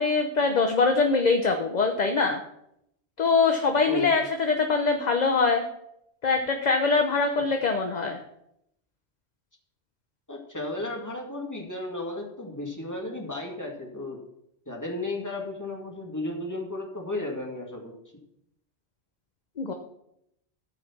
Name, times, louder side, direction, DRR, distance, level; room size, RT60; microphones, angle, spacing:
voice 1, 0.0-2.4 3.2-5.6 6.2-8.2 19.6-19.7, left 4 dB, 45° left, 4 dB, 0.9 m, -23 dB
voice 2, 10.3-14.2 14.7-17.9, left 2 dB, 15° left, -1 dB, 2.1 m, -34 dB
14.0 x 4.9 x 5.7 m, 0.78 s
omnidirectional pair, 1.1 m